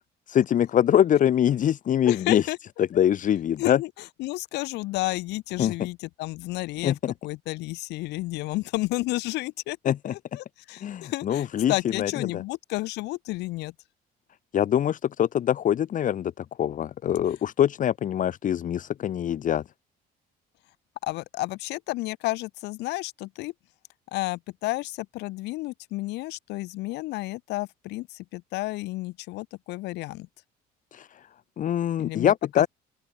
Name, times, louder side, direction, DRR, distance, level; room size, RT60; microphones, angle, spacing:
voice 1, 0.3-2.5 2.8-3.8 5.6-5.7 6.8-7.1 9.8-10.1 10.8-11.7 12.0-12.4 14.5-19.6 30.9-31.1 31.6-32.7, left 10 dB, 50° left, 1.4 m, -24 dB
voice 2, 2.0-2.6 2.9-3.0 3.6-3.9 4.2-7.0 7.2-13.7 21.0-23.5 24.1-30.3 32.0-32.7, left 20 dB, 90° left, 2.3 m, -31 dB
open air
cardioid pair, 110°, 17 cm